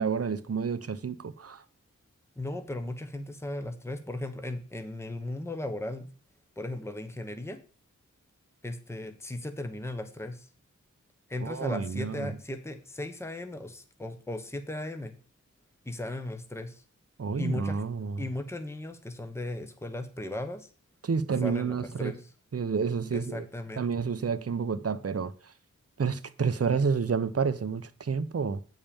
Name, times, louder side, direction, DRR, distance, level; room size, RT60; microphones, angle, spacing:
voice 1, 0.0-1.6 11.4-12.3 17.2-18.3 21.0-22.1 22.5-23.5 23.8-25.3 26.0-28.6, right 5 dB, 50° right, 0.8 m, -29 dB
voice 2, 2.4-6.1 6.6-7.6 8.6-10.5 11.3-15.1 15.9-16.8 17.4-17.8 18.2-20.7 21.4-22.3 23.1-24.0, left 1 dB, 10° left, 1.2 m, -36 dB
8.6 x 5.5 x 7.0 m
wide cardioid pair, 70°, 31 cm